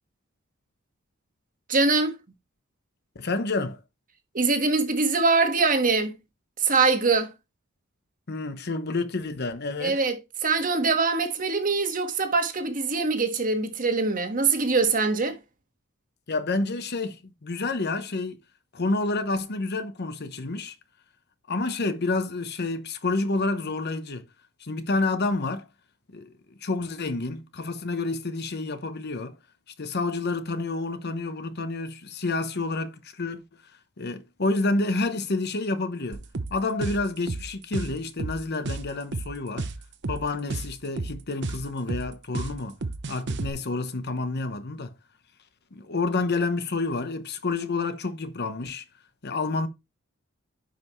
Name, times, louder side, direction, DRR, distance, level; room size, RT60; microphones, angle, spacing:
voice 1, 1.7-2.1 4.3-6.1 6.6-7.3 9.8-15.4, right 4 dB, 40° right, 1.5 m, -23 dB
voice 2, 3.1-3.8 8.3-10.0 16.3-18.4 18.7-20.7 21.5-24.3 24.6-25.7 26.1-26.3 26.6-29.4 29.8-33.4 34.0-36.2 36.5-39.7 40.1-42.8 43.1-44.9 45.7-48.8 49.2-49.7, left 3 dB, 50° left, 0.9 m, -29 dB
sound 1, 36.1-43.5, right 3 dB, 60° right, 0.9 m, -32 dB
10.0 x 5.5 x 3.1 m
head